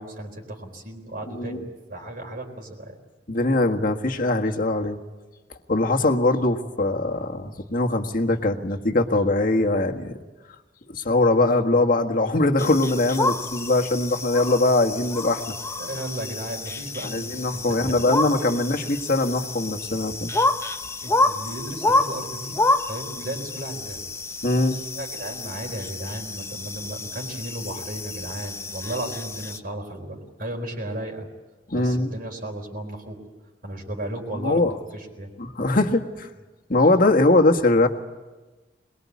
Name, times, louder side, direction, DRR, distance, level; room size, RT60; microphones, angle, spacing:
voice 1, 0.0-3.0 15.8-18.5 21.0-22.5 22.8-24.0 25.0-31.3 31.7-33.2 33.6-34.6 34.9-35.3, right 1 dB, 55° right, 1 dB, 4.1 m, -35 dB
voice 2, 1.3-1.7 3.3-5.0 5.7-10.2 10.9-15.5 17.0-20.3 24.4-24.8 31.7-32.1 34.3-34.7 35.4-36.3 36.7-37.9, left 2 dB, 50° left, 4 dB, 1.7 m, -22 dB
sound 1, 12.6-29.6, left 2 dB, 15° left, 0.7 m, -29 dB
22.5 x 21.5 x 8.5 m, 1.2 s
head